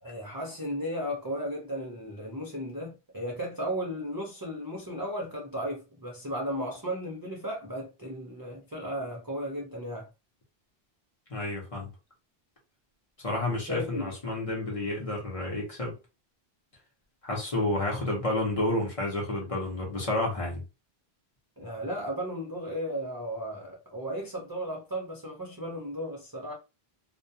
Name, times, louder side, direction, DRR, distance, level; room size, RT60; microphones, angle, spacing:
voice 1, 0.0-10.1 13.4-14.1 21.6-26.5, equal, 30° right, 0.4 m, -35 dB
voice 2, 11.3-11.9 13.2-15.9 17.2-20.6, left 1 dB, 35° left, 0.8 m, -30 dB
2.3 x 2.2 x 2.6 m
omnidirectional pair, 1.1 m